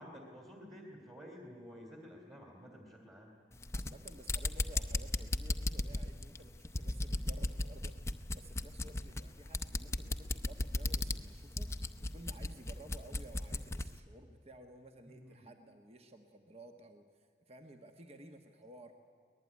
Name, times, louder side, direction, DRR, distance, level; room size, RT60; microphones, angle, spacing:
voice 1, 0.0-3.3 15.1-15.5, equal, 20° right, 1 dB, 2.6 m, -51 dB
sound 1, 3.5-13.9, left 2 dB, 15° left, 0.7 m, -36 dB
voice 2, 3.7-8.0 8.3-18.9, right 1 dB, 35° right, 6 dB, 1.3 m, -55 dB
24.0 x 19.5 x 9.6 m, 2.1 s
head